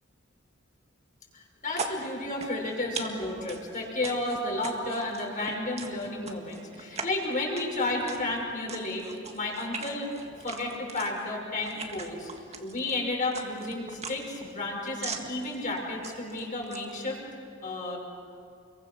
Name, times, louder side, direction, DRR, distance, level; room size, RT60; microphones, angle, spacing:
voice 1, 1.3-9.0 9.3-10.1 10.4-12.3 12.6-17.2 17.6-18.0, left 2 dB, 40° left, -1 dB, 6.1 m, -32 dB
sound 1, 1.7-17.0, right 4 dB, 35° right, 1.7 m, -42 dB
29.5 x 23.0 x 6.4 m, 2.4 s
head